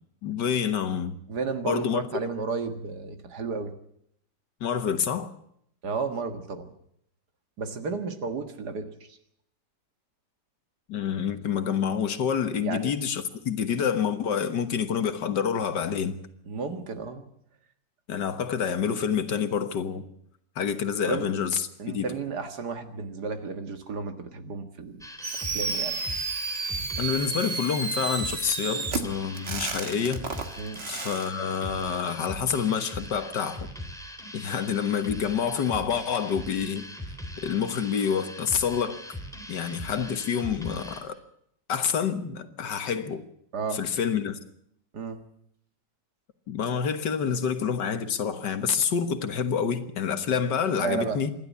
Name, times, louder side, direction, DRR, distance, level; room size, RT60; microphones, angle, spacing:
voice 1, 0.2-1.2 1.7-2.0 4.6-5.3 10.9-16.2 18.1-20.0 20.6-22.1 27.0-30.3 30.9-33.7 34.3-36.9 37.4-39.0 39.5-41.2 41.7-43.2 43.7-44.4 46.5-51.3, left 7 dB, 75° left, 2.0 m, -27 dB
voice 2, 1.3-3.7 5.8-6.7 7.6-8.9 12.6-12.9 16.5-17.3 21.0-21.3 21.8-25.0 25.5-26.0 30.6-30.8 43.5-43.8 44.9-45.2 50.8-51.2, right 4 dB, 65° right, 2.3 m, -32 dB
sound 1, 25.0-41.0, equal, ahead, 3.3 m, -41 dB
Fireworks, 25.2-31.3, right 4 dB, 35° right, 1.6 m, -32 dB
27.0 x 12.0 x 8.3 m
omnidirectional pair, 1.9 m